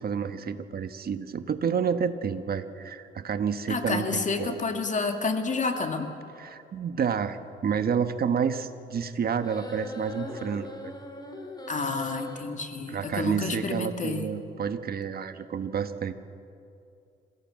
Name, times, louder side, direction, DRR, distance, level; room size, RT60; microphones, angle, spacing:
voice 1, 0.0-4.6 6.4-10.9 12.9-16.1, right 7 dB, 50° right, 9 dB, 1.5 m, -29 dB
voice 2, 3.7-6.1 11.7-14.3, left 3 dB, 40° left, 5 dB, 2.3 m, -29 dB
sound 1, 9.4-12.4, left 2 dB, 20° left, 3.8 m, -40 dB
27.5 x 17.0 x 7.7 m, 2.6 s
cardioid pair, 90°, 20 cm